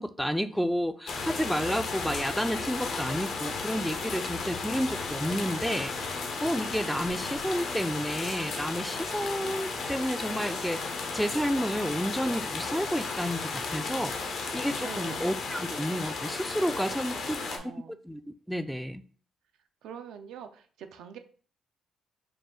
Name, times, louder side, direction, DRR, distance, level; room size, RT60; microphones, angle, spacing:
voice 1, 0.0-10.8 11.1-14.1 14.5-17.4 18.0-19.0, equal, ahead, 0.3 m, -31 dB
sound 1, 1.1-17.6, left 4 dB, 70° left, 0.8 m, -34 dB
voice 2, 14.8-15.3 16.8-18.0 19.8-21.2, right 8 dB, 85° right, 0.5 m, -44 dB
4.8 x 2.3 x 3.7 m
cardioid pair, 90°, 0 cm